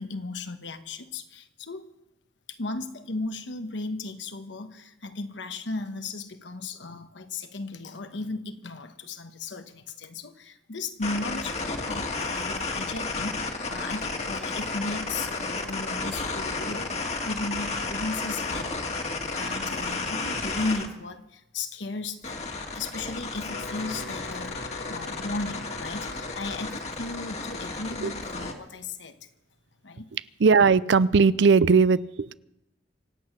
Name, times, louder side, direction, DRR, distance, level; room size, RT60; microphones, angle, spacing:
voice 1, 0.0-1.9 2.5-18.9 19.3-22.4 22.7-24.6 24.9-29.2 29.8-30.1, left 3 dB, 90° left, 1.2 m, -35 dB
sound 1, 11.0-20.9 22.2-28.5, left 3 dB, 35° left, 1.6 m, -32 dB
Wind instrument woodwind instrument, 23.4-27.2, left 3 dB, 55° left, 1.2 m, -42 dB
voice 2, 30.1-32.3, right 5 dB, 80° right, 0.5 m, -19 dB
25.5 x 8.6 x 6.1 m
head